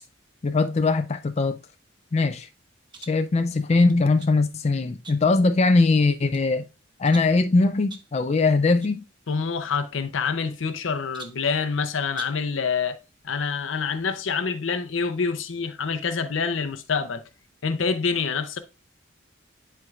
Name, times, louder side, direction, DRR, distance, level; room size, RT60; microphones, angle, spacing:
voice 1, 0.4-1.6 2.1-2.5 3.1-6.6 7.0-9.0, left 3 dB, 35° left, 0.4 m, -21 dB
sound 1, 2.9-3.3 3.9-4.4 5.0-5.5 6.0-6.5 7.0-7.4 7.9-8.2 8.8-9.0 9.3-9.4 10.2-10.8 11.1-11.5 12.1-12.5, right 4 dB, 25° right, 0.9 m, -44 dB
voice 2, 9.3-13.0 13.2-17.2 17.6-18.6, left 5 dB, 80° left, 0.6 m, -26 dB
10.5 x 4.5 x 2.4 m
head